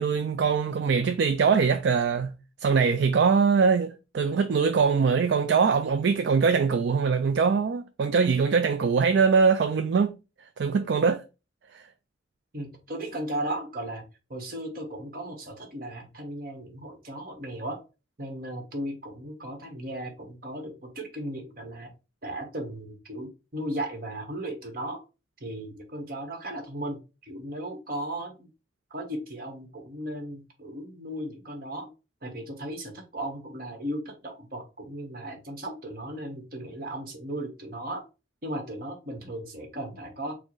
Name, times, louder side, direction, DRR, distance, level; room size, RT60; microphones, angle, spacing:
voice 1, 0.0-2.3 2.6-10.1 10.6-11.2, right 5 dB, 65° right, 0.3 m, -22 dB
voice 2, 12.5-14.0 14.3-17.8 18.2-21.9 22.2-25.0 25.4-28.5 28.9-31.9 32.2-38.0 38.4-40.3, right 1 dB, 50° right, 1.1 m, -36 dB
4.4 x 2.1 x 4.4 m
head